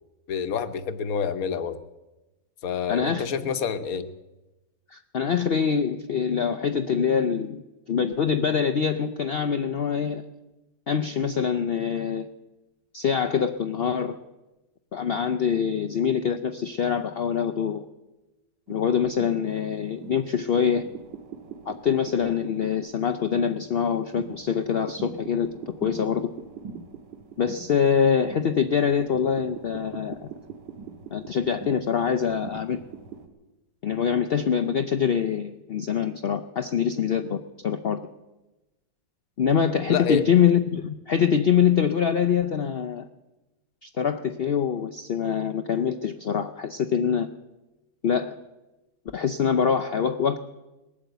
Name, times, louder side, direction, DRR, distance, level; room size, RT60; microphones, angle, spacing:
voice 1, 0.3-1.8 2.6-4.1 39.9-40.2, left 6 dB, 60° left, 10 dB, 1.2 m, -27 dB
voice 2, 2.9-3.5 4.9-10.3 10.9-12.3 12.9-14.2 14.9-17.8 18.7-20.9 21.7-25.5 25.8-26.3 27.4-30.3 31.1-32.8 33.8-38.0 39.4-43.1 43.8-47.3 48.0-48.3 49.1-50.4, left 7 dB, 80° left, 8 dB, 0.5 m, -24 dB
sound 1, 18.7-33.3, right 6 dB, 80° right, 2.1 m, -42 dB
20.0 x 8.8 x 8.0 m, 1.1 s
omnidirectional pair, 1.8 m